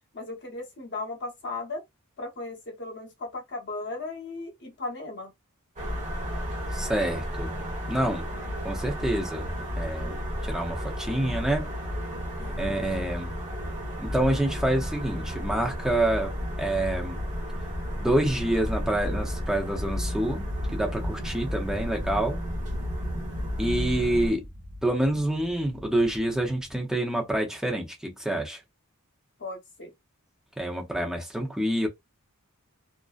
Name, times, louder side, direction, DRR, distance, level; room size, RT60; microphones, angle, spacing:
voice 1, 0.1-1.8 2.2-5.3 12.4-13.1 29.4-29.9, left 3 dB, 55° left, 0.9 m, -37 dB
sound 1, 5.8-24.3, equal, 35° right, 1.0 m, -33 dB
voice 2, 6.7-7.5 7.9-8.2 8.6-9.5 9.8-11.7 12.6-13.3 14.0-17.2 18.0-22.4 23.6-24.5 24.8-28.6 30.6-31.9, right 1 dB, ahead, 0.6 m, -27 dB
sound 2, 17.4-26.8, equal, 75° right, 0.9 m, -40 dB
2.5 x 2.1 x 2.4 m
head